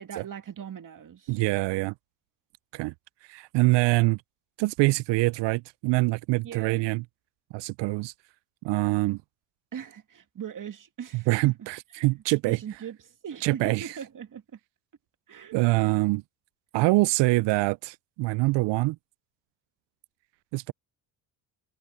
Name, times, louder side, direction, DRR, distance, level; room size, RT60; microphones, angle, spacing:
voice 1, 0.0-1.4 6.4-6.9 9.7-11.6 11.9-12.1 12.5-14.6 15.3-15.5, right 8 dB, 45° right, 2.2 m, -40 dB
voice 2, 1.3-1.9 2.7-2.9 3.3-4.2 4.6-7.0 7.5-8.1 8.6-9.2 11.3-12.6 13.4-13.9 15.5-16.2 16.7-19.0 20.5-20.7, right 22 dB, 65° right, 0.5 m, -24 dB
supercardioid pair, 75°, 46 cm